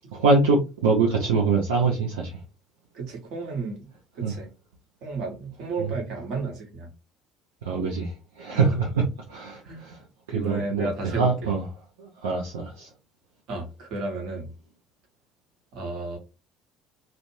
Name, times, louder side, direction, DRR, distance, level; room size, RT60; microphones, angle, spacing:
voice 1, 0.1-2.4 4.2-4.3 5.8-5.9 7.6-10.0 10.3-11.7 12.0-12.9, right 4 dB, 70° right, 0.5 m, -24 dB
voice 2, 2.9-3.9 4.2-4.5 5.0-6.9 8.5-8.7 9.6-9.9 10.3-11.5 13.5-14.5 15.7-16.2, right 3 dB, 55° right, 1.0 m, -33 dB
2.5 x 2.0 x 2.9 m
figure-of-eight pair, 55°, 0 cm